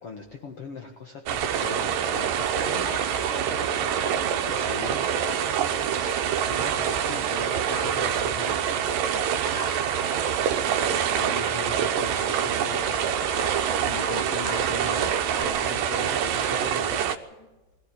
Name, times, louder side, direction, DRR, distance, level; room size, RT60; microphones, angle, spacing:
voice 1, 0.0-2.9 4.5-5.1 5.8-8.7 10.8-17.0, left 5 dB, 50° left, 3 dB, 2.2 m, -40 dB
sound 1, 1.3-17.2, right 8 dB, 80° right, 2.6 m, -26 dB
voice 2, 2.8-6.1 9.5-9.7 11.0-11.3 11.6-13.0 13.7-14.8 16.7-17.0 17.4-17.5, left 4 dB, 85° left, 3 dB, 4.3 m, -44 dB
sound 2, 6.4-15.4, left 1 dB, 25° left, 2.1 m, -43 dB
21.5 x 15.0 x 8.3 m, 1.1 s
omnidirectional pair, 3.9 m